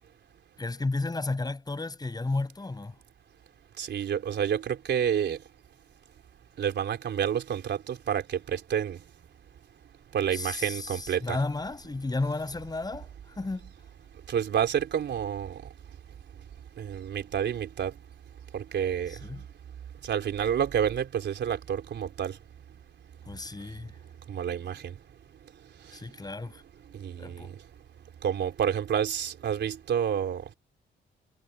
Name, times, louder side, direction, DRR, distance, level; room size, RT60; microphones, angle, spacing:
voice 1, 0.6-3.0 10.3-13.1 13.4-13.7 19.1-19.4 23.3-23.9 25.9-26.6 27.2-27.5, left 3 dB, 20° left, 7.6 m, -33 dB
voice 2, 3.8-5.4 6.6-9.0 10.1-11.4 14.3-15.6 16.8-17.9 18.5-19.2 20.0-22.4 24.3-24.9 26.9-27.5 28.2-30.4, right 8 dB, 60° right, 3.9 m, -29 dB
cardioid pair, 90°, 20 cm